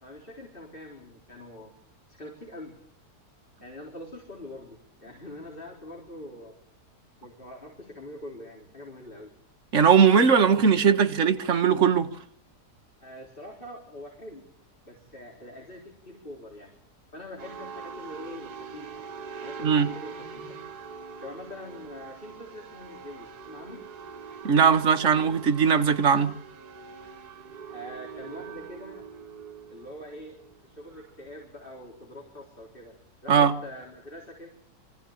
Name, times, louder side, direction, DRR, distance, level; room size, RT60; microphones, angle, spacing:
voice 1, 0.0-1.7 2.1-2.8 3.6-6.6 7.2-9.3 13.0-14.5 14.8-16.7 17.1-18.9 19.4-20.6 21.2-23.9 27.7-29.0 29.7-30.4 30.6-32.9 33.2-34.5, left 1 dB, 30° left, 4.2 m, -44 dB
voice 2, 9.7-12.1 19.6-19.9 24.4-26.3 33.3-33.5, right 6 dB, 50° right, 1.6 m, -20 dB
sound 1, 17.4-31.6, right 6 dB, 70° right, 2.0 m, -43 dB
24.5 x 15.5 x 8.8 m
omnidirectional pair, 1.8 m